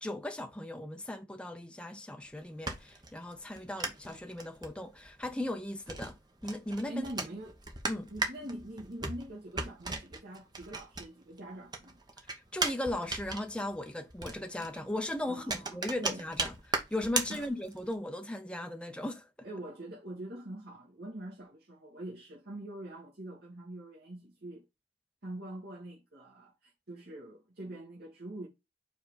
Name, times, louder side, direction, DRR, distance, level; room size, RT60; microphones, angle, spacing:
voice 1, 0.0-7.0 7.9-8.1 12.3-19.3, left 1 dB, 5° left, 0.5 m, -37 dB
sound 1, 2.2-11.4 11.7-17.9, right 3 dB, 20° right, 1.0 m, -37 dB
voice 2, 6.9-7.6 8.1-12.0 15.3-16.2 17.3-17.5 19.4-24.6 25.2-28.5, right 1 dB, 55° right, 1.9 m, -44 dB
4.8 x 4.0 x 5.1 m
head